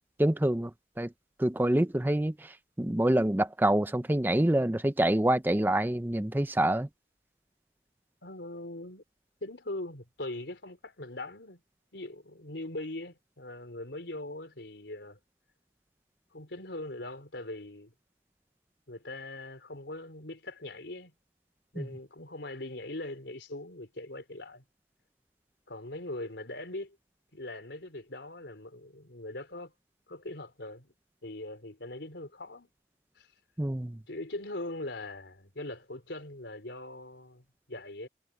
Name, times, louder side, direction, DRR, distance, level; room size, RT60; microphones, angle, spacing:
voice 1, 0.2-1.1 1.4-6.9 21.8-21.9 33.6-34.0, right 1 dB, 10° right, 0.5 m, -26 dB
voice 2, 8.2-9.0 9.4-11.6 11.9-15.2 16.3-17.9 18.9-21.1 21.7-24.6 25.7-27.0 27.3-29.7 30.1-30.9 31.2-32.7 33.2-33.3 34.1-38.1, left 2 dB, 75° left, 3.7 m, -41 dB
head